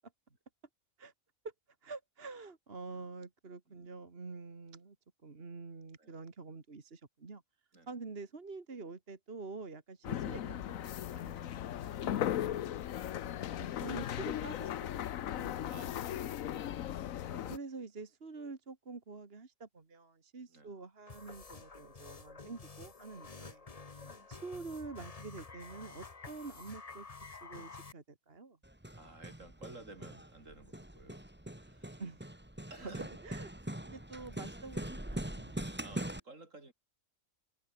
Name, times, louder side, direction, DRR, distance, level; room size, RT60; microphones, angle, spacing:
voice 1, 1.8-5.0 5.2-7.4 7.9-12.9 13.6-15.7 17.3-27.1 27.4-28.6 32.0-32.3 32.8-33.5 33.8-35.8, right 4 dB, 45° right, 2.2 m, -47 dB
sound 1, 10.0-17.6, left 11 dB, 90° left, 1.2 m, -37 dB
voice 2, 15.7-16.8 20.5-20.7 23.3-23.5 24.0-24.3 28.9-31.2 31.5-32.0 32.7-33.1 35.8-36.7, right 2 dB, 70° right, 4.8 m, -55 dB
sound 2, 21.1-27.9, left 4 dB, 30° left, 1.1 m, -50 dB
Hammer, 28.6-36.2, right 1 dB, 10° right, 2.0 m, -43 dB
omnidirectional pair, 1.4 m